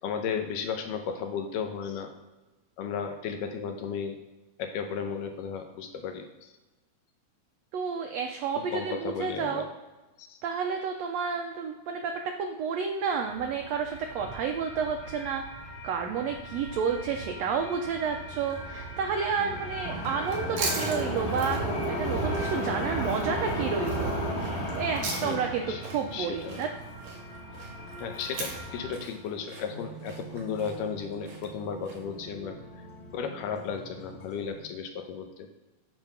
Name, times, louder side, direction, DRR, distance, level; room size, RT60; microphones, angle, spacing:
voice 1, 0.0-2.1 2.8-4.2 4.6-6.5 8.6-9.7 10.2-10.4 19.4-19.6 25.2-25.4 25.7-25.8 26.1-26.7 28.0-32.6 33.1-35.5, left 6 dB, 85° left, 6 dB, 2.4 m, -34 dB
voice 2, 7.7-9.6 10.4-15.4 15.8-24.1 24.7-26.7, right 6 dB, 85° right, 4 dB, 1.5 m, -31 dB
sound 1, 13.0-28.9, equal, 50° left, 2.5 m, -35 dB
sound 2, 16.1-34.6, right 2 dB, 25° left, 1.4 m, -46 dB
sound 3, 19.9-32.2, right 4 dB, 60° right, 2.5 m, -40 dB
8.8 x 4.1 x 5.8 m, 1.1 s
omnidirectional pair, 3.7 m